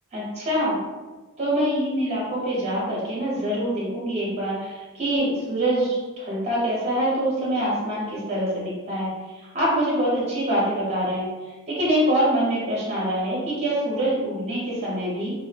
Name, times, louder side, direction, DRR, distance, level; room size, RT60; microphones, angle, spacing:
voice 1, 0.1-0.8 1.4-9.1 9.3-15.3, right 1 dB, 30° right, -6 dB, 0.9 m, -25 dB
2.7 x 2.1 x 3.2 m, 1.2 s
head